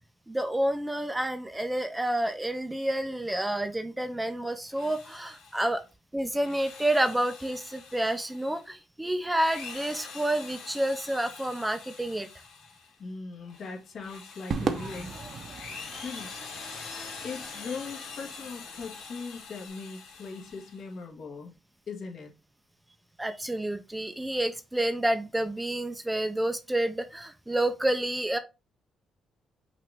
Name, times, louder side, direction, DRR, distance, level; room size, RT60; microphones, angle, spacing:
voice 1, 0.3-5.8 6.1-12.3 23.2-28.4, right 1 dB, 10° right, 10 dB, 0.5 m, -29 dB
Drill, 4.6-5.8 6.3-8.7 9.2-13.0 13.4-20.9, left 5 dB, 90° left, 1.3 m, -44 dB
voice 2, 13.0-15.1 15.9-16.3 17.2-21.5 21.9-22.3, left 4 dB, 60° left, 1 dB, 1.4 m, -40 dB
Crowd / Fireworks, 14.5-19.0, right 5 dB, 55° right, 0.7 m, -37 dB
5.7 x 2.5 x 3.3 m, 0.27 s
cardioid pair, 90°, 0 cm